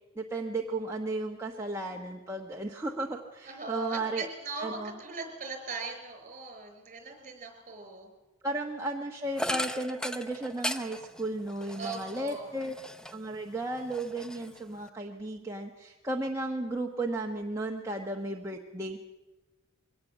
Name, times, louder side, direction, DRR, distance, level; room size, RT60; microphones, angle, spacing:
voice 1, 0.1-4.3 4.6-4.9 8.4-12.8 13.1-19.0, right 2 dB, 15° right, 0 dB, 1.1 m, -34 dB
voice 2, 3.4-8.1 11.7-12.5, right 4 dB, 40° right, 6 dB, 4.8 m, -39 dB
sound 1, 9.4-13.3 13.7-14.9, left 1 dB, 5° left, 0.6 m, -37 dB
22.5 x 18.0 x 7.4 m, 1.1 s
head